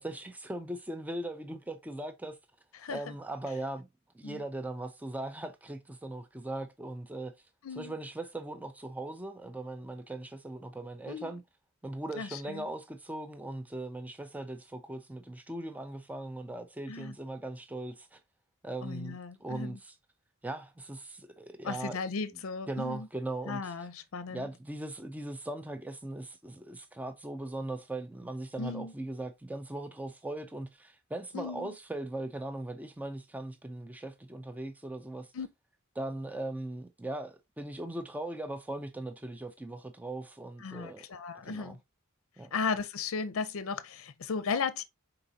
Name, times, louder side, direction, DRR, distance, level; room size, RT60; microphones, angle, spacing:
voice 1, 0.0-2.4 2.9-3.9 4.1-7.3 7.8-11.4 11.8-18.2 18.6-20.0 20.4-22.0 22.7-23.7 24.3-35.3 36.0-41.1 41.4-41.8 42.4-42.5, right 1 dB, 5° right, 0.4 m, -39 dB
voice 2, 2.8-3.1 4.2-4.4 7.6-7.9 11.1-11.4 12.2-12.7 16.9-17.1 18.8-19.8 21.6-23.1 23.5-24.4 28.6-28.9 31.3-31.7 35.3-35.5 40.6-41.8 42.5-44.8, left 5 dB, 70° left, 0.5 m, -36 dB
4.9 x 3.9 x 2.7 m
head